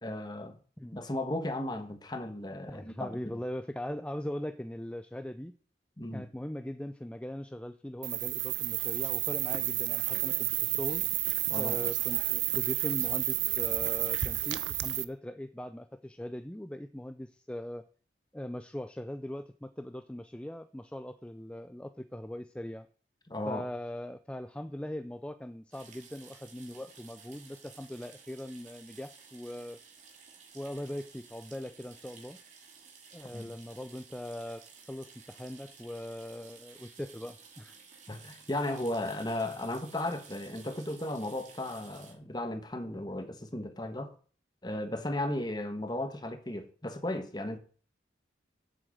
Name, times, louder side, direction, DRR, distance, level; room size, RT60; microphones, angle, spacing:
voice 1, 0.0-0.6 0.9-3.2 6.0-6.2 11.5-11.8 23.3-23.6 33.3-33.5 38.1-44.1 44.6-47.6, left 1 dB, 25° left, 1.2 m, -35 dB
voice 2, 2.7-5.5 6.1-11.0 11.5-17.8 18.3-22.9 23.5-29.8 30.5-32.4 33.1-37.8, left 1 dB, 5° left, 0.4 m, -40 dB
sound 1, 8.0-15.0, right 16 dB, 90° right, 0.6 m, -31 dB
sound 2, 25.7-42.1, right 6 dB, 40° right, 2.8 m, -54 dB
7.9 x 7.6 x 7.8 m
head